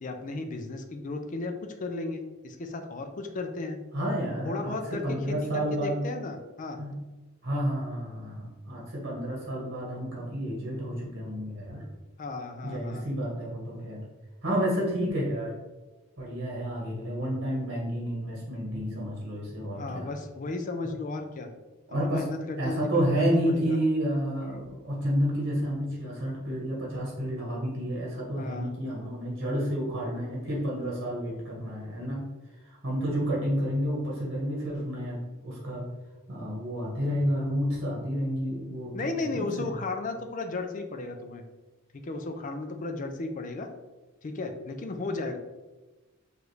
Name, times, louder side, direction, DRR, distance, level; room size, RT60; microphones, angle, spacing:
voice 1, 0.0-3.8 4.4-6.8 12.2-13.0 19.7-21.5 21.9-23.8 24.4-24.6 28.4-28.7 38.9-41.4 41.9-43.7 44.2-45.4, left 3 dB, 35° left, 6 dB, 0.4 m, -35 dB
voice 2, 3.9-4.8 5.0-6.0 6.8-6.9 7.4-11.8 12.6-14.0 14.4-15.5 16.2-20.1 21.9-22.3 22.6-32.2 32.6-35.9 36.3-39.7, equal, 50° right, -4 dB, 1.1 m, -30 dB
5.0 x 2.5 x 3.1 m, 1.2 s
head